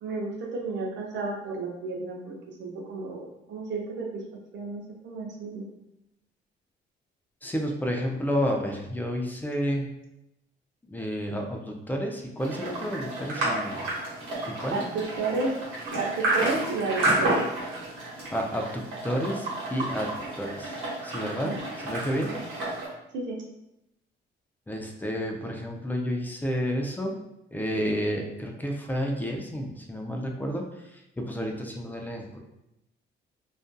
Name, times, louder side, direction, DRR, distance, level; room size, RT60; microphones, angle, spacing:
voice 1, 0.0-4.2 4.5-5.6 14.7-15.5 16.0-17.4 21.2-21.6 23.1-23.4, right 3 dB, 65° right, 0 dB, 0.6 m, -32 dB
voice 2, 7.4-9.9 10.9-13.8 14.5-14.8 18.3-22.3 24.7-27.1 27.5-30.7 31.2-32.4, equal, 10° left, 2 dB, 0.4 m, -30 dB
sound 1, 12.4-22.9, right 2 dB, 80° right, 1.0 m, -31 dB
2.5 x 2.4 x 2.2 m, 0.86 s
cardioid pair, 90°, 20 cm